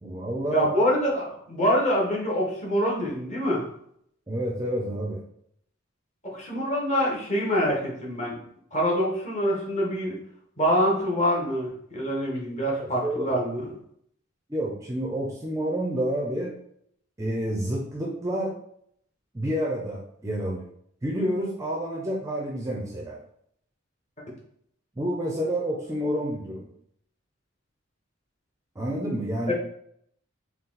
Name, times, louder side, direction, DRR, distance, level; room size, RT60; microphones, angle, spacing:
voice 1, 0.0-0.7 4.3-5.2 12.8-13.3 14.5-16.5 17.2-18.5 19.3-20.6 21.0-23.2 25.0-26.7 28.8-29.5, right 1 dB, 15° right, -1 dB, 0.5 m, -29 dB
voice 2, 0.5-3.6 6.3-8.4 8.7-10.2 10.6-13.7 29.5-29.6, equal, 35° left, -3 dB, 1.1 m, -25 dB
4.1 x 2.3 x 3.8 m, 0.68 s
head